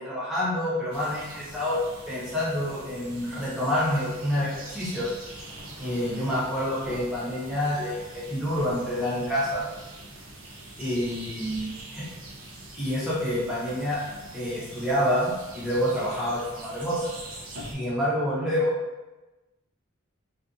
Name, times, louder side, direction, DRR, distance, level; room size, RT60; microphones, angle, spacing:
voice 1, 0.0-5.1 5.8-9.7 10.8-12.0 12.8-14.0 14.3-17.0 17.6-18.8, equal, 5° right, -9 dB, 0.8 m, -28 dB
sound 1, 0.9-17.7, right 1 dB, 80° right, 0.5 m, -43 dB
2.5 x 2.3 x 2.5 m, 1.1 s
head